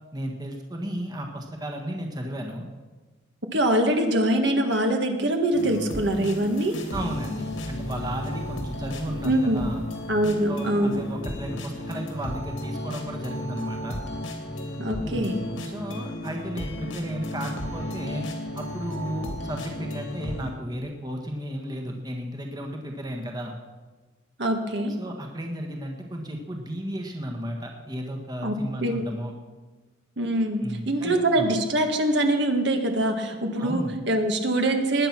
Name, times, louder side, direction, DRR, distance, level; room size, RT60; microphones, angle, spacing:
voice 1, 0.1-2.6 6.9-9.8 10.5-14.0 15.0-18.3 18.5-23.5 25.0-29.3 30.6-31.5 33.6-33.9, equal, 20° right, 2 dB, 1.5 m, -34 dB
voice 2, 3.5-6.7 9.2-9.6 10.1-11.0 14.8-15.4 24.4-24.9 28.4-28.5 28.8-29.0 30.2-35.1, right 1 dB, 60° right, 4 dB, 1.8 m, -24 dB
sound 1, 5.5-20.5, left 1 dB, 75° left, 2.7 m, -34 dB
19.5 x 10.0 x 6.0 m, 1.3 s
head